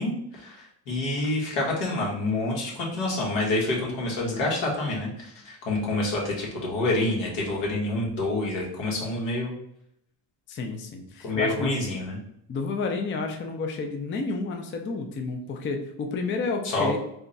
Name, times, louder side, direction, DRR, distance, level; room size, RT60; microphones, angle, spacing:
voice 1, 0.0-9.5 11.2-12.2 16.6-16.9, left 2 dB, 80° left, -2 dB, 1.5 m, -27 dB
voice 2, 10.5-11.8 12.5-17.0, left 4 dB, 25° left, 4 dB, 0.4 m, -30 dB
3.6 x 2.2 x 3.9 m, 0.74 s
cardioid pair, 100°, 46 cm